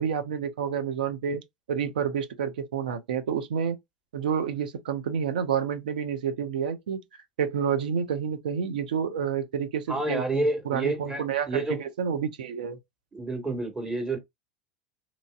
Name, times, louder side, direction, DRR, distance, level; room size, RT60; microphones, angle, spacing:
voice 1, 0.0-1.4 1.7-3.8 4.1-7.0 7.4-10.2 10.7-12.8, right 7 dB, 80° right, 0.7 m, -29 dB
voice 2, 9.9-11.8 13.1-14.2, right 2 dB, 15° right, 1.3 m, -29 dB
3.0 x 2.6 x 2.3 m
hypercardioid pair, 90°, 5 cm